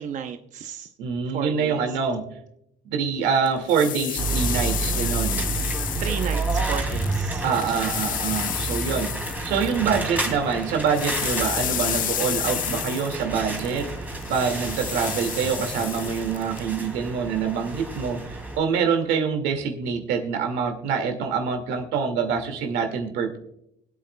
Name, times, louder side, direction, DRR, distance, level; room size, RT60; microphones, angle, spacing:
voice 1, 0.0-0.9 1.3-2.0 5.9-7.4, right 7 dB, 50° right, 6 dB, 0.7 m, -33 dB
voice 2, 1.0-2.2 2.9-5.4 7.4-9.1 9.4-23.4, right 6 dB, 90° right, 4 dB, 2.2 m, -25 dB
sound 1, 3.5-10.3 10.5-16.6, left 11 dB, 55° left, 0.5 m, -31 dB
sound 2, 4.2-18.6, right 3 dB, 10° right, 2.5 m, -30 dB
24.5 x 8.3 x 2.3 m, 0.79 s
cardioid pair, 110°, 17 cm